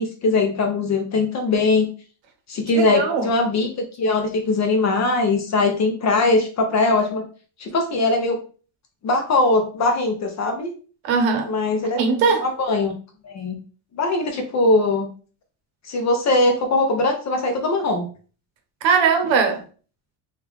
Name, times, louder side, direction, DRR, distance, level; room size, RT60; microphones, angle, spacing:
voice 1, 0.0-1.9 2.5-7.3 7.6-8.4 9.0-10.7 11.4-12.0 12.4-12.9 13.2-13.6 14.0-15.1 15.8-18.1, left 2 dB, 35° left, 0.5 m, -21 dB
voice 2, 2.7-3.3 11.0-11.5 12.0-12.5 18.8-19.6, right 5 dB, 65° right, 0.8 m, -20 dB
3.5 x 2.4 x 3.0 m
cardioid pair, 170°, 50 cm